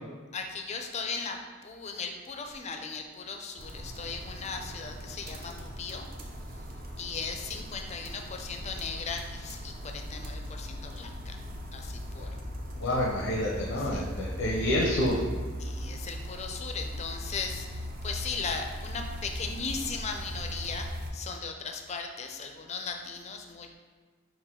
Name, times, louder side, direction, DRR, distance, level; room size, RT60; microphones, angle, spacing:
voice 1, 0.3-6.1 7.0-11.4 11.7-12.3 13.8-14.0 15.6-23.8, left 5 dB, 35° left, 4 dB, 0.4 m, -37 dB
sound 1, 3.6-21.1, equal, 45° right, 0.6 m, -39 dB
voice 2, 12.7-15.2, left 1 dB, 80° left, -2 dB, 0.6 m, -28 dB
5.7 x 2.5 x 3.6 m, 1.5 s
head